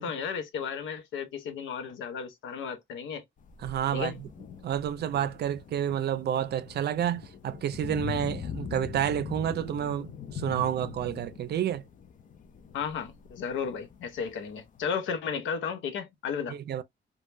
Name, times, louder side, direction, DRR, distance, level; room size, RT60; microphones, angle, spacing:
voice 1, 0.0-3.2 3.9-4.2 12.7-16.6, left 6 dB, 80° left, 0.7 m, -34 dB
sound 1, 3.4-14.9, left 7 dB, 40° left, 0.4 m, -42 dB
voice 2, 3.6-4.3 4.6-11.8 16.5-16.8, right 10 dB, 55° right, 0.5 m, -30 dB
2.2 x 2.0 x 3.1 m
cardioid pair, 90°, 20 cm